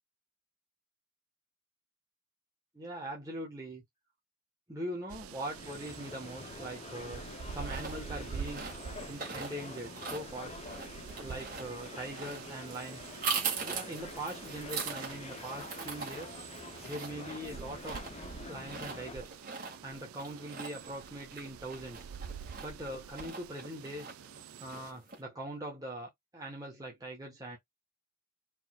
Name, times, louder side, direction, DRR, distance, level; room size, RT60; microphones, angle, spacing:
voice 1, 2.7-3.8 4.7-7.2 7.5-8.6 9.1-10.6 11.2-18.0 18.4-19.4 19.8-22.1 22.6-24.2 24.6-27.6, right 1 dB, 15° right, 1.1 m, -42 dB
sound 1, 5.1-24.9, right 7 dB, 90° right, 0.4 m, -47 dB
sound 2, 5.5-19.2, left 3 dB, 30° left, 0.5 m, -47 dB
sound 3, 7.3-25.2, right 5 dB, 40° right, 1.7 m, -42 dB
4.3 x 4.0 x 2.2 m
head